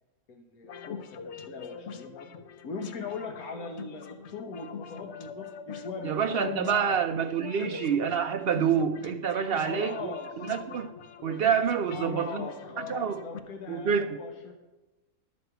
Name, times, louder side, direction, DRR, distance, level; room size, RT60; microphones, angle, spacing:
voice 1, 0.3-2.3 2.6-6.8 7.6-7.8 9.4-10.5 11.8-14.5, left 4 dB, 85° left, 1.5 m, -40 dB
sound 1, 0.6-13.4, left 6 dB, 55° left, 1.0 m, -43 dB
voice 2, 6.0-10.9 11.2-12.4 12.8-13.2 13.7-14.2, right 7 dB, 70° right, 0.6 m, -27 dB
11.5 x 5.2 x 7.9 m
omnidirectional pair, 1.5 m